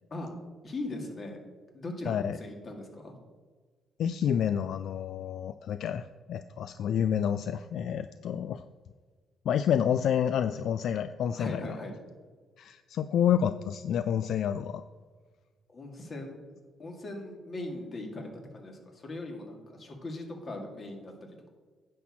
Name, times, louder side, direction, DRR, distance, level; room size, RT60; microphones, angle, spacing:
voice 1, 0.6-1.4 1.7-3.2 11.3-11.9 15.7-16.4 16.8-21.5, left 2 dB, 40° left, 2 dB, 2.1 m, -39 dB
voice 2, 2.1-2.4 4.0-8.6 9.5-11.6 12.6-14.8, left 9 dB, 70° left, 11 dB, 0.3 m, -29 dB
10.0 x 4.4 x 7.4 m, 1.5 s
cardioid pair, 90°, 0 cm